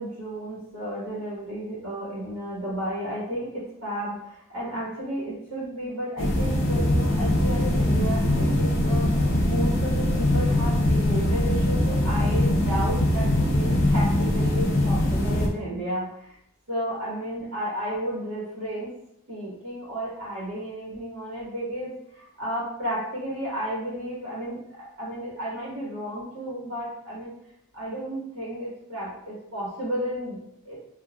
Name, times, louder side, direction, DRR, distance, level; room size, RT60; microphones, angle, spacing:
voice 1, 0.0-16.3 16.7-18.9 19.3-27.4 27.7-30.8, right 1 dB, 80° right, -8 dB, 1.3 m, -33 dB
sound 1, 6.2-15.5, left 1 dB, 60° left, 0.6 m, -22 dB
3.8 x 2.4 x 2.3 m, 0.77 s
head